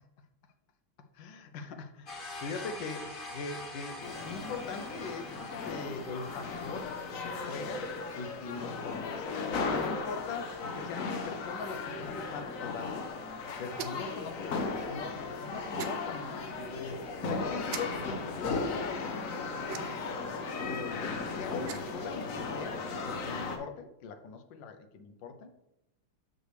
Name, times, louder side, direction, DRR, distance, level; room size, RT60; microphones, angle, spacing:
voice 1, 1.1-6.9 7.2-7.9 8.2-13.1 13.6-19.9 20.6-25.5, left 4 dB, 85° left, 7 dB, 1.4 m, -42 dB
sound 1, 2.1-8.0, left 2 dB, 30° left, 1.5 m, -45 dB
sound 2, 4.0-23.6, left 4 dB, 55° left, 1.0 m, -36 dB
sound 3, 13.7-14.2 15.8-16.0 17.7-17.8 19.7-20.1 21.5-22.0, right 9 dB, 85° right, 1.3 m, -40 dB
6.6 x 6.3 x 3.2 m, 0.86 s
omnidirectional pair, 2.0 m